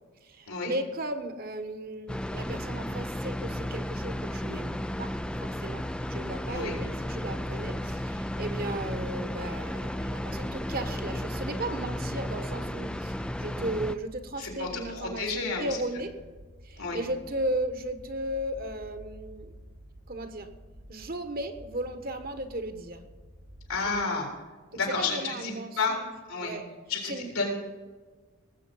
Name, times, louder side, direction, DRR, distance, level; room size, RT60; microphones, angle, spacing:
voice 1, 0.2-5.1 5.4-5.8 6.1-16.1 16.6-19.5 20.1-20.5 20.9-23.0 23.8-24.2 24.9-26.0 26.4-26.6 27.1-27.3, right 1 dB, 40° right, 8 dB, 1.2 m, -35 dB
sound 1, 2.1-13.9, left 1 dB, 5° left, 0.4 m, -34 dB
sound 2, 5.9-24.0, equal, 80° right, 3.4 m, -51 dB
voice 2, 14.4-15.8 16.8-17.0 23.7-24.3 24.7-26.0 26.3-26.6 26.9-27.6, left 4 dB, 80° left, 0 dB, 3.9 m, -31 dB
19.0 x 8.3 x 5.4 m, 1.4 s
head